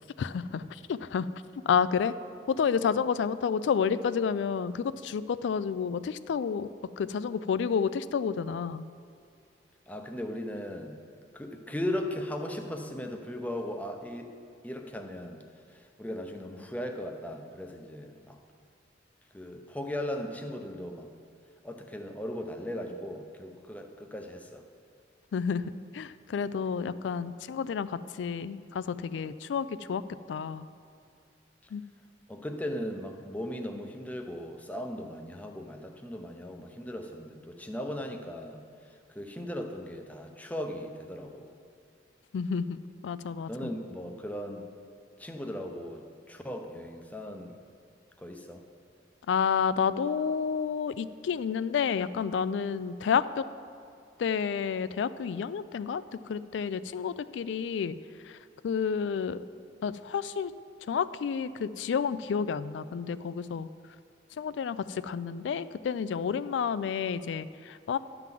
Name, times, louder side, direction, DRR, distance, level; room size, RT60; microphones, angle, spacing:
voice 1, 0.2-1.3 1.7-2.1 2.5-6.7 7.0-8.8 25.3-30.0 30.3-30.7 31.7-31.8 42.3-43.5 49.3-53.5 54.2-57.9 58.2-58.4 58.6-59.4 59.8-60.5 60.9-63.7 64.4-68.0, left 6 dB, 75° left, 15 dB, 0.3 m, -30 dB
voice 2, 9.9-11.0 11.3-14.3 14.6-15.4 15.7-18.4 19.3-21.1 21.6-24.6 31.6-31.7 32.3-41.6 43.5-44.7 45.2-47.6 48.2-48.6, left 1 dB, 10° left, 4 dB, 0.6 m, -37 dB
11.5 x 4.0 x 7.4 m, 2.4 s
head